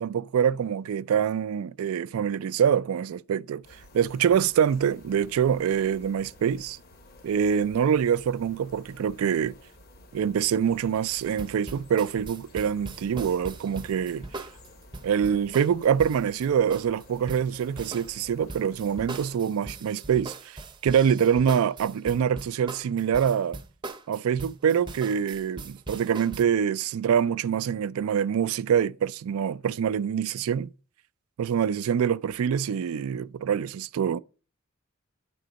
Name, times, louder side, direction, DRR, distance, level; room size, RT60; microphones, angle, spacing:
voice 1, 0.0-3.6 3.9-6.8 7.2-9.6 10.1-14.2 15.0-23.6 24.1-30.7 31.4-34.2, right 8 dB, 90° right, 0.3 m, -25 dB
sound 1, 3.6-19.4, left 1 dB, 45° left, 1.0 m, -52 dB
sound 2, 11.2-26.4, right 3 dB, 20° right, 0.6 m, -40 dB
9.1 x 3.8 x 5.1 m
head